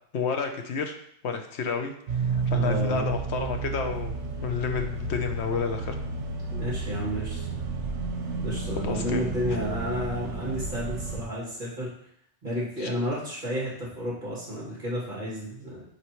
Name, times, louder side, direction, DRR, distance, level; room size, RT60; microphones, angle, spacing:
voice 1, 0.1-0.9 1.2-4.1 4.4-6.0 8.8-9.3 12.8-12.9, left 5 dB, 70° left, 5 dB, 1.0 m, -30 dB
sound 1, 2.1-11.2, right 4 dB, 85° right, 1.3 m, -31 dB
voice 2, 2.5-3.0 6.5-7.5 8.4-11.9 12.4-15.8, equal, 45° right, -6 dB, 2.7 m, -31 dB
7.0 x 4.6 x 3.1 m, 0.69 s
omnidirectional pair, 1.2 m